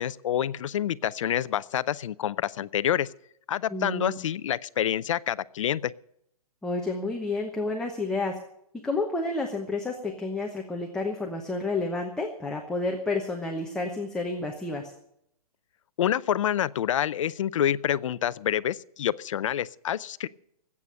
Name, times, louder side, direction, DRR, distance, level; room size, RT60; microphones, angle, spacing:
voice 1, 0.0-3.1 3.5-5.9 16.0-20.3, left 10 dB, 55° left, 18 dB, 0.5 m, -27 dB
voice 2, 3.7-4.2 6.6-8.4 8.8-14.9, left 2 dB, 5° left, 0 dB, 0.9 m, -30 dB
19.0 x 8.5 x 6.3 m, 0.72 s
hypercardioid pair, 160°, 20 cm